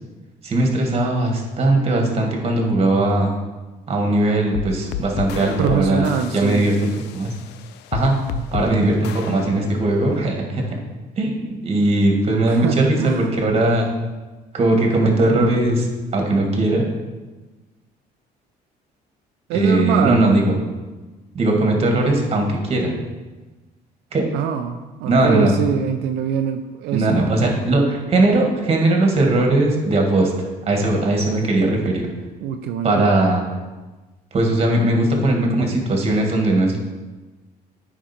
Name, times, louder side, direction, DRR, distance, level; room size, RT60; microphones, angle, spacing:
voice 1, 0.4-3.3 3.9-6.1 6.3-7.3 7.9-8.2 8.5-10.8 11.2-13.9 14.5-15.9 16.1-16.9 19.5-20.6 21.3-22.9 24.1-24.3 25.1-25.5 26.9-32.1 32.8-33.4 34.3-36.8, right 2 dB, 35° right, 1 dB, 1.9 m, -19 dB
sound 1, 4.5-10.2, left 10 dB, 85° left, 0.4 m, -32 dB
voice 2, 5.6-6.7 12.4-13.3 19.5-20.3 24.3-27.2 32.4-33.1, right 8 dB, 85° right, 6 dB, 0.5 m, -23 dB
9.2 x 5.2 x 4.4 m, 1.2 s
cardioid pair, 110°, 17 cm